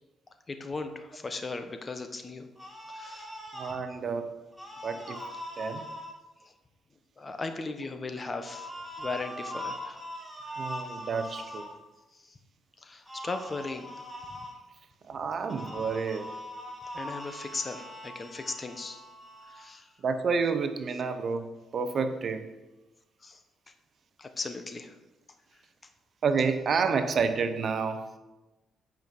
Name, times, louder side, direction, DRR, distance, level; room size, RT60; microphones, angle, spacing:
voice 1, 0.5-2.5 2.9-3.3 5.3-5.4 6.4-6.5 7.2-10.0 12.1-12.4 12.8-13.9 14.3-14.5 16.9-19.0 19.5-19.9 23.2-23.4 24.2-24.9, left 3 dB, 30° left, 7 dB, 1.0 m, -37 dB
sound 1, 2.6-3.8 4.5-6.1 8.4-11.7 13.1-14.5 15.5-19.6, equal, 5° right, 1.8 m, -41 dB
voice 2, 3.5-4.3 4.8-5.2 5.6-5.8 10.6-11.6 15.1-16.3 20.0-22.5 26.2-28.0, right 5 dB, 50° right, 10 dB, 0.7 m, -29 dB
9.0 x 5.2 x 5.3 m, 1.1 s
cardioid pair, 90°, 0 cm